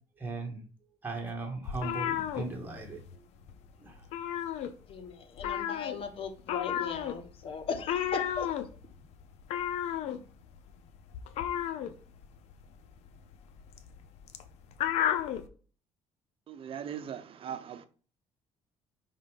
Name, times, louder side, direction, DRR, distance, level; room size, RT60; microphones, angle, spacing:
voice 1, 0.2-0.6 1.0-3.0 3.8-3.9, right 3 dB, 15° right, 2.1 m, -37 dB
sound 1, 1.6-3.2 3.4-3.7 3.9-5.0 5.4-15.5, left 10 dB, 80° left, 0.7 m, -33 dB
voice 2, 4.9-8.5, left 5 dB, 55° left, 1.3 m, -38 dB
voice 3, 16.5-17.9, right 8 dB, 55° right, 0.8 m, -40 dB
5.3 x 3.8 x 5.3 m
cardioid pair, 85°, 11 cm